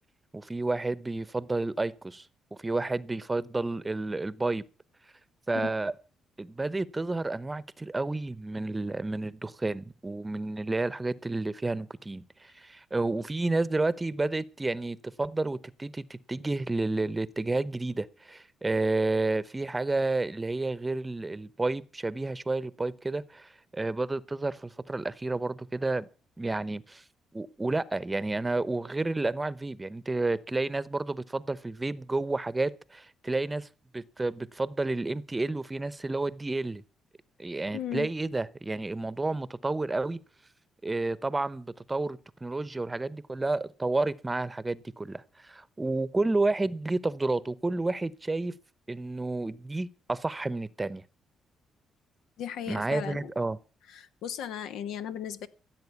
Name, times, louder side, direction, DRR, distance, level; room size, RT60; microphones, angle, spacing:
voice 1, 0.3-2.3 2.6-4.6 5.5-5.9 6.4-26.0 26.4-27.0 27.3-33.7 33.9-36.8 37.4-40.2 40.8-48.5 48.9-51.0 52.7-53.6, right 2 dB, 20° right, 0.8 m, -30 dB
voice 2, 37.7-38.1 52.4-53.3 53.9-55.5, left 9 dB, 85° left, 1.2 m, -36 dB
15.5 x 7.8 x 8.3 m
cardioid pair, 90°, 0 cm